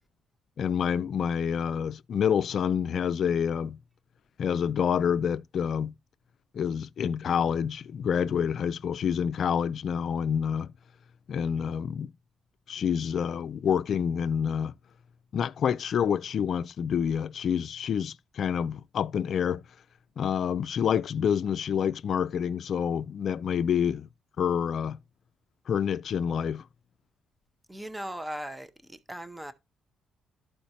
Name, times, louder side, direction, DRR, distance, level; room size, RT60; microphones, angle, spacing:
voice 1, 0.6-3.8 4.4-5.9 6.5-10.7 11.3-12.1 12.7-14.7 15.3-19.6 20.2-24.1 24.4-25.0 25.7-26.6, left 8 dB, 60° left, 0.3 m, -28 dB
voice 2, 27.7-29.5, right 1 dB, 10° right, 0.7 m, -38 dB
12.5 x 4.4 x 2.8 m
cardioid pair, 90°, 0 cm